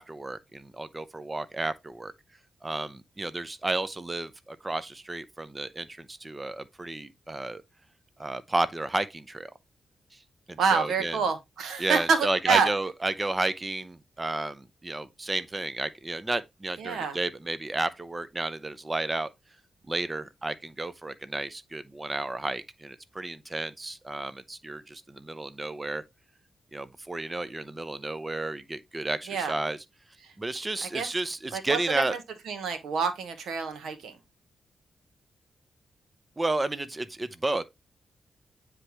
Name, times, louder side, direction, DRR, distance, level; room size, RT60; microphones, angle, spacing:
voice 1, 0.0-2.1 2.6-7.6 8.2-9.5 10.5-11.2 11.8-19.3 19.9-26.0 26.7-29.8 30.4-32.1 36.4-37.6, right 2 dB, 25° right, 0.6 m, -32 dB
voice 2, 10.6-12.7 16.8-17.2 29.3-29.5 30.2-30.3 30.8-31.1 31.5-34.1, right 5 dB, 85° right, 1.1 m, -27 dB
9.5 x 3.4 x 3.0 m
cardioid pair, 70°, 0 cm